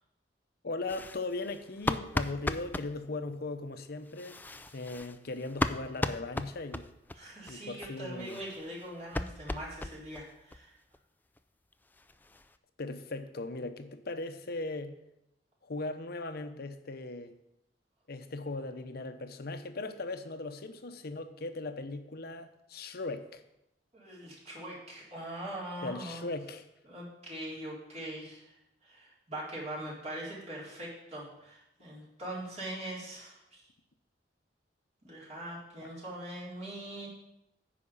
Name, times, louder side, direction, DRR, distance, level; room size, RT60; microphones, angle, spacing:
voice 1, 0.6-4.4 4.7-6.9 7.5-8.4 12.8-14.9 15.6-17.3 18.1-23.4 25.8-26.7, left 2 dB, 60° left, 8 dB, 0.8 m, -38 dB
sound 1, 0.9-2.9 4.1-7.2 7.5-7.6 7.8-7.9 8.2-10.3 10.5-10.6 10.9-11.0 11.4-11.5 11.7-12.5, left 1 dB, 10° left, 0.4 m, -36 dB
voice 2, 7.2-10.8 23.9-26.2 26.9-28.5 28.8-33.6 35.0-37.1, right 1 dB, 40° right, -6 dB, 4.3 m, -42 dB
10.0 x 5.1 x 7.1 m, 0.84 s
head